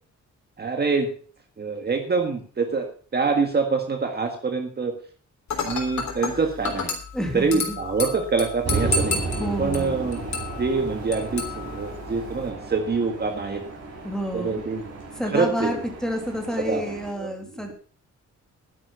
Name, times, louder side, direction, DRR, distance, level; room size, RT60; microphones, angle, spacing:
voice 1, 0.6-1.1 1.6-2.9 3.1-4.9 5.6-6.9 7.3-9.2 9.6-10.2 10.6-13.6 14.3-14.8 15.3-15.7 16.7-17.3, right 4 dB, 35° right, 5 dB, 1.7 m, -25 dB
Dishes pots and pans / Glass, 5.5-12.5, left 4 dB, 70° left, 3.5 m, -32 dB
voice 2, 7.1-7.8 9.4-9.9 14.0-14.6 15.2-17.7, equal, ahead, 2 dB, 2.9 m, -29 dB
sound 1, 8.6-17.1, right 3 dB, 55° right, 6.0 m, -33 dB
11.5 x 9.9 x 5.4 m, 0.42 s
wide cardioid pair, 135°, 30 cm